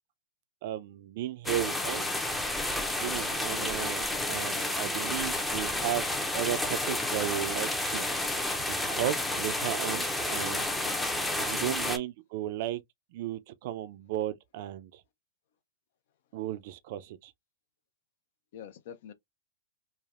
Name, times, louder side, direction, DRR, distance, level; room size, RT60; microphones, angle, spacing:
voice 1, 0.6-2.0 2.9-4.0 4.3-6.1 6.3-8.1 8.7-10.7 11.4-12.8 13.1-15.0 16.3-17.3, right 12 dB, 55° right, 0.4 m, -34 dB
sound 1, 1.5-12.0, left 1 dB, 5° left, 0.5 m, -31 dB
voice 2, 3.5-4.7 10.3-11.0 18.5-19.1, left 9 dB, 65° left, 0.5 m, -47 dB
3.3 x 2.1 x 2.4 m
hypercardioid pair, 120°, 0 cm